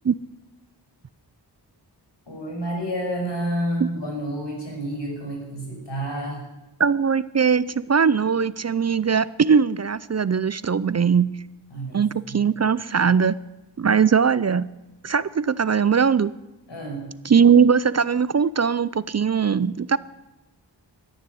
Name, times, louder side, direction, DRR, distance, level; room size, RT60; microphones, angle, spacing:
voice 1, 2.3-6.4 11.7-12.5 16.7-17.1, right 1 dB, 75° left, 0 dB, 5.7 m, -30 dB
voice 2, 6.8-11.3 11.9-13.4 13.8-14.7 15.0-16.3 17.2-20.0, right 6 dB, 40° right, 18 dB, 0.5 m, -20 dB
13.0 x 11.0 x 9.4 m, 1.0 s
wide cardioid pair, 65°, 42 cm